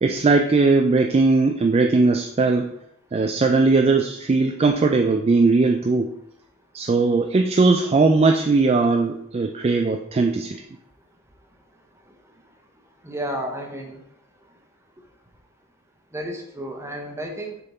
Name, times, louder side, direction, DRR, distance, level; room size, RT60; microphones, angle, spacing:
voice 1, 0.0-2.7 3.1-6.1 6.7-10.6, right 3 dB, 30° right, 4 dB, 0.3 m, -19 dB
voice 2, 13.0-14.0 16.1-17.6, equal, 15° right, 2 dB, 0.8 m, -32 dB
6.7 x 3.6 x 4.2 m, 0.77 s
head